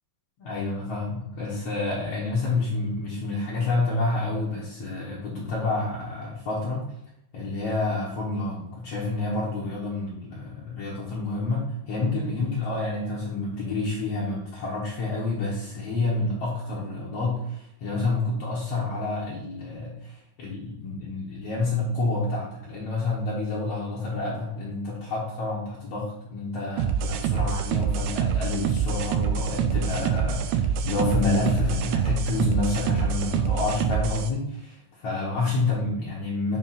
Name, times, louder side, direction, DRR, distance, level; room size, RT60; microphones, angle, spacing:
voice 1, 0.4-6.9 7.3-36.6, left 3 dB, 60° left, -6 dB, 1.9 m, -29 dB
sound 1, 26.8-34.3, right 7 dB, 80° right, 1.8 m, -26 dB
7.1 x 3.5 x 4.1 m, 0.79 s
omnidirectional pair, 3.7 m